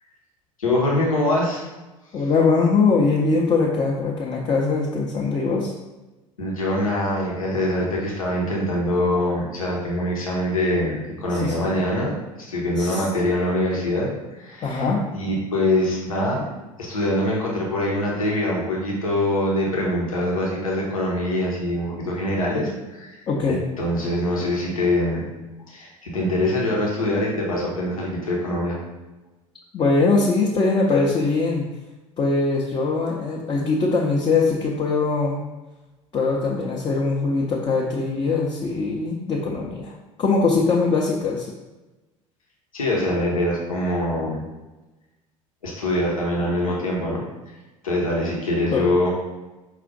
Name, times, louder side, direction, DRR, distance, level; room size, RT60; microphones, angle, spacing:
voice 1, 0.6-1.7 6.4-12.1 12.4-14.1 14.4-16.4 16.8-23.2 23.5-25.3 25.7-28.8 42.7-44.4 45.6-47.2 47.8-49.1, left 1 dB, 75° left, -3 dB, 0.9 m, -24 dB
voice 2, 2.1-5.7 11.4-11.7 12.8-13.0 14.6-15.0 23.3-23.6 29.7-31.6 32.2-35.4 36.1-39.9 40.2-41.5 48.7-48.8, left 4 dB, 25° left, -2 dB, 0.6 m, -21 dB
4.9 x 2.4 x 3.9 m, 1.1 s
figure-of-eight pair, 65°, 18 cm